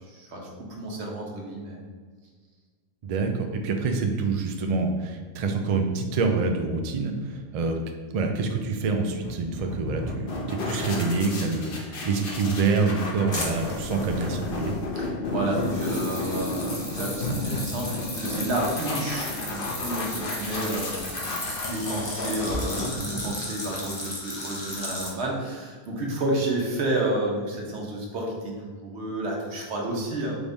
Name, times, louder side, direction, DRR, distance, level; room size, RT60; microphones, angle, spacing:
voice 1, 0.1-1.8 15.0-30.3, right 1 dB, 80° right, -1 dB, 1.2 m, -31 dB
voice 2, 3.0-7.8 8.1-14.7, right 4 dB, 55° right, 4 dB, 0.4 m, -26 dB
sound 1, 9.2-23.6, left 2 dB, 60° left, 0.9 m, -32 dB
sound 2, 13.3-14.9 15.5-25.1, left 1 dB, 30° left, 0.7 m, -35 dB
4.8 x 2.6 x 3.4 m, 1.5 s
omnidirectional pair, 1.1 m